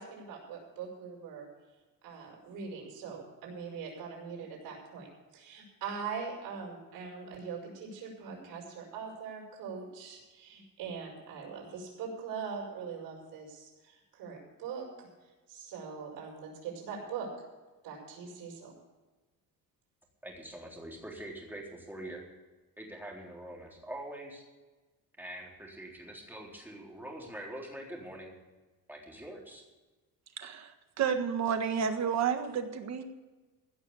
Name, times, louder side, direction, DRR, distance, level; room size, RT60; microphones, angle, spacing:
voice 1, 0.0-1.5 2.0-15.1 15.5-17.3 17.8-18.7, right 6 dB, 80° right, -2 dB, 5.6 m, -42 dB
voice 2, 20.2-22.2 22.8-24.4 25.2-28.3 28.9-29.6, right 1 dB, 5° right, -2 dB, 3.7 m, -44 dB
voice 3, 30.4-30.7 31.0-33.0, right 7 dB, 50° right, 7 dB, 1.5 m, -30 dB
16.0 x 6.3 x 8.5 m, 1.2 s
cardioid pair, 135°, 35 cm